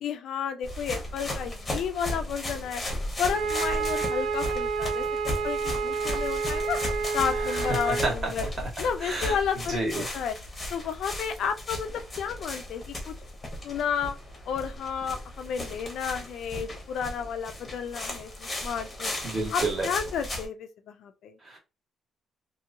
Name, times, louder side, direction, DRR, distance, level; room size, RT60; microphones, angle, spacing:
voice 1, 0.0-2.8 3.2-6.8 7.1-8.5 8.8-10.3 10.7-13.1 13.6-14.1 14.5-19.1 19.5-21.3, left 7 dB, 65° left, 0.4 m, -32 dB
sound 1, 0.6-20.5, left 1 dB, 15° left, 0.9 m, -36 dB
Wind instrument woodwind instrument, 3.3-8.1, right 5 dB, 80° right, 0.6 m, -29 dB
voice 2, 7.9-8.5 9.0-9.4 9.7-10.0 19.2-19.9 21.4-21.6, right 2 dB, 30° right, 1.3 m, -30 dB
2.9 x 2.7 x 2.6 m
cardioid pair, 160°, 0 cm